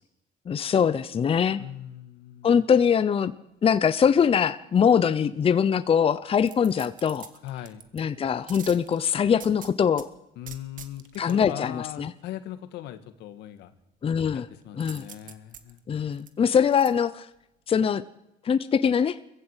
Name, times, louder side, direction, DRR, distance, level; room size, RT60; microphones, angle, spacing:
voice 1, 0.5-1.6 2.4-3.3 3.6-7.3 7.9-10.1 11.2-12.1 14.0-14.5 14.8-15.1 15.9-17.3 17.7-18.0 18.4-19.2, left 7 dB, 35° left, 13 dB, 0.8 m, -22 dB
voice 2, 1.6-2.5 7.4-7.8 10.4-13.7 14.3-15.8, left 12 dB, 85° left, 10 dB, 1.8 m, -39 dB
sound 1, 6.4-8.0 8.5-10.1 10.4-11.3 14.8-16.9 17.3-17.4, right 8 dB, 50° right, 1.7 m, -45 dB
21.5 x 15.0 x 8.2 m, 0.89 s
cardioid pair, 110°, 17 cm